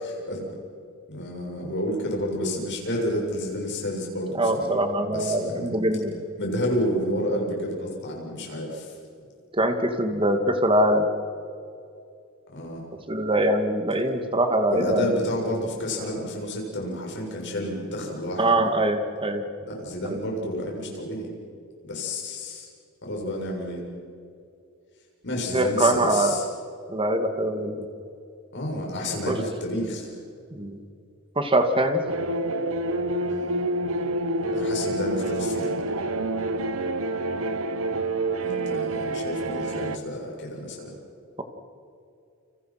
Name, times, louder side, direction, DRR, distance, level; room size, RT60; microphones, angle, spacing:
voice 1, 0.0-0.4 1.1-4.7 5.1-5.8 6.4-8.9 12.5-12.9 14.7-18.4 19.6-21.3 21.8-22.7 23.0-23.8 25.2-26.4 28.5-30.1 33.3-33.5 34.5-35.7 38.4-41.0, left 1 dB, 55° left, -1 dB, 7.2 m, -30 dB
voice 2, 4.4-6.2 9.5-11.1 13.1-15.1 18.4-19.4 20.0-20.2 25.5-26.4 26.9-27.9 29.3-29.4 30.5-30.8 31.4-32.0, right 1 dB, 25° right, 6 dB, 2.2 m, -23 dB
sound 1, 32.1-40.0, right 2 dB, 65° right, 1.3 m, -27 dB
29.5 x 27.5 x 6.0 m, 2.5 s
head